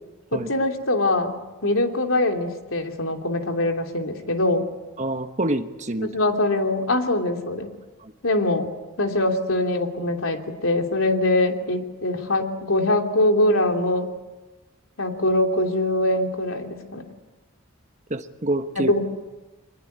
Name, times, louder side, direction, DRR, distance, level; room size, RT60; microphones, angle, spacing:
voice 1, 0.3-1.4 1.6-4.7 6.0-7.7 8.2-8.7 9.0-14.1 15.0-17.0 18.8-19.0, left 1 dB, 80° left, 3 dB, 3.1 m, -23 dB
voice 2, 5.0-6.1 8.0-8.1 18.1-18.9, right 1 dB, 35° right, 8 dB, 1.3 m, -27 dB
24.5 x 21.0 x 9.5 m, 1.1 s
head